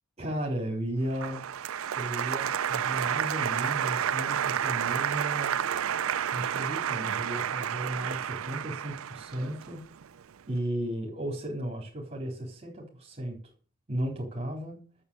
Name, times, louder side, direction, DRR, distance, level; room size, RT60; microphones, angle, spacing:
voice 1, 0.2-1.4 1.9-5.6 6.3-9.8 10.5-13.4 13.9-14.8, right 1 dB, 30° right, -1 dB, 3.9 m, -34 dB
Applause, 1.1-10.2, right 9 dB, 70° right, 0.5 m, -30 dB
12.5 x 7.3 x 7.0 m, 0.41 s
head